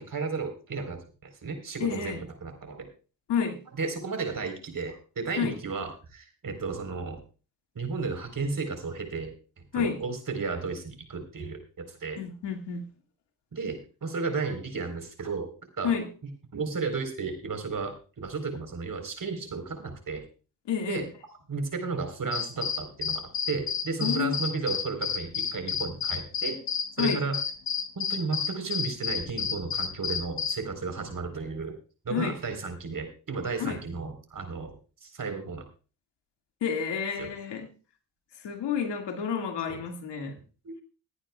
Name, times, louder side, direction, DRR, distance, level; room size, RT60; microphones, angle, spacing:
voice 1, 0.0-2.9 3.8-7.2 7.7-9.3 9.7-12.2 13.5-15.5 15.8-15.9 16.5-20.2 20.9-21.1 21.5-26.6 27.0-27.4 27.9-31.7 32.0-34.8 35.0-35.6 37.2-37.3 39.7-39.8 40.6-40.7, right 4 dB, 50° right, 5 dB, 4.1 m, -33 dB
voice 2, 1.8-2.2 3.3-3.6 5.4-5.6 9.7-10.0 12.2-12.9 15.8-16.1 20.7-21.1 24.0-24.4 27.0-27.2 32.1-32.4 33.6-33.8 36.6-37.7 38.4-40.4, left 7 dB, 70° left, 4 dB, 2.2 m, -30 dB
sound 1, 22.3-30.6, left 7 dB, 55° left, 1.5 m, -30 dB
22.5 x 9.9 x 2.4 m, 0.36 s
hypercardioid pair, 45°, 43 cm